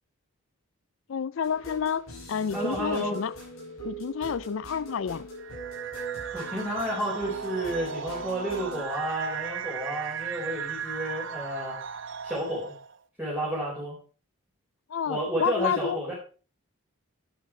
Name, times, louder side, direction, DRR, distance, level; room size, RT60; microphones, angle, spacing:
voice 1, 1.1-3.3 3.8-5.3 14.9-16.0, left 7 dB, 65° left, 0.4 m, -30 dB
sound 1, 1.4-8.8, right 3 dB, 90° left, 5.9 m, -40 dB
voice 2, 2.5-3.2 6.3-11.7 12.2-12.7 13.2-14.0 15.1-16.1, equal, 5° right, 4.2 m, -31 dB
sound 2, 5.4-13.0, right 7 dB, 60° right, 0.7 m, -37 dB
9.9 x 9.2 x 4.8 m
head